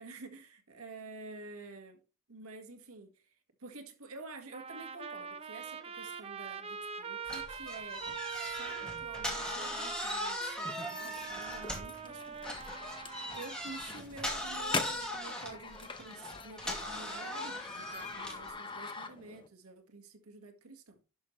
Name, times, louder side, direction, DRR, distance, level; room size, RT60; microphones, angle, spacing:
voice 1, 0.0-2.0 2.3-12.7 13.0-21.0, right 3 dB, 85° right, 1.7 m, -49 dB
Trumpet, 4.5-13.6, right 6 dB, 25° right, 0.8 m, -43 dB
sound 1, 7.3-12.0 12.4-18.5, left 1 dB, 5° left, 2.3 m, -39 dB
sound 2, 10.6-19.5, left 4 dB, 20° left, 0.9 m, -43 dB
11.5 x 6.5 x 3.2 m
head